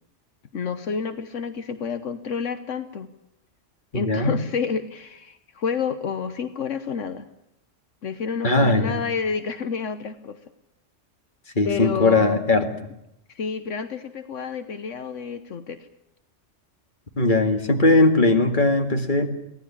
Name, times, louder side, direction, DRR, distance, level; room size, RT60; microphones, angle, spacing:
voice 1, 0.5-3.1 3.9-7.3 8.0-10.4 11.6-12.5 13.3-15.9, left 6 dB, 75° left, 11 dB, 1.4 m, -29 dB
voice 2, 3.9-4.3 8.4-9.0 11.6-12.6 17.2-19.3, left 2 dB, 40° left, 6 dB, 2.3 m, -19 dB
24.0 x 17.0 x 8.6 m, 0.84 s
omnidirectional pair, 1.3 m